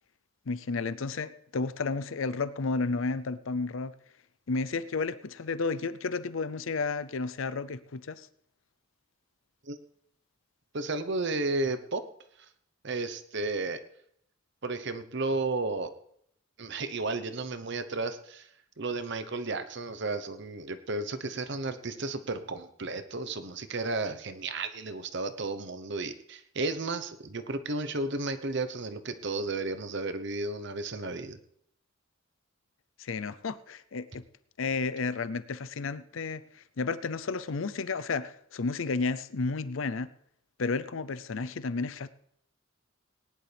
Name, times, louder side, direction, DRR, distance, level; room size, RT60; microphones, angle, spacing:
voice 1, 0.5-3.9 4.5-8.3 33.0-34.2 34.6-40.1 40.6-42.1, left 4 dB, 65° left, 0.6 m, -32 dB
voice 2, 10.7-12.0 12.4-12.5 12.8-13.8 14.6-15.9 16.6-18.5 18.8-31.4, right 3 dB, 55° right, 0.9 m, -33 dB
19.5 x 10.5 x 3.4 m
head